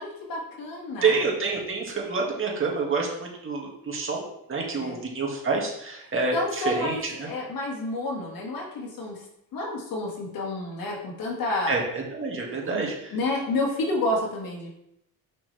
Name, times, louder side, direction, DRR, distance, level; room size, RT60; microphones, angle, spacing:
voice 1, 0.0-1.3 4.8-5.0 6.3-9.2 9.5-11.7 12.7-14.7, left 2 dB, 70° left, -1 dB, 2.1 m, -30 dB
voice 2, 1.0-4.2 4.5-7.3 11.7-12.9, right 4 dB, 35° right, -1 dB, 2.0 m, -27 dB
6.5 x 5.7 x 3.4 m, 0.78 s
cardioid pair, 110°, 36 cm